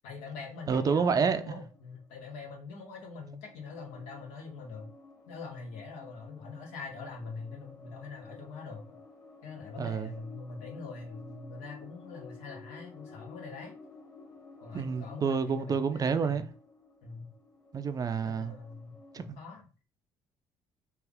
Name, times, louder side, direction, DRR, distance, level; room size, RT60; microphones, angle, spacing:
voice 1, 0.0-4.9 5.3-9.0 9.4-13.7 14.6-16.5 17.0-17.3 18.2-19.8, left 4 dB, 80° left, 1.1 m, -44 dB
voice 2, 0.7-1.6 9.8-10.1 14.7-16.5 17.7-18.5 19.1-19.2, right 6 dB, 35° right, 0.4 m, -29 dB
sound 1, 0.9-2.8 3.2-19.3, left 3 dB, 30° left, 1.3 m, -53 dB
3.4 x 2.4 x 3.5 m
hypercardioid pair, 65°, 10 cm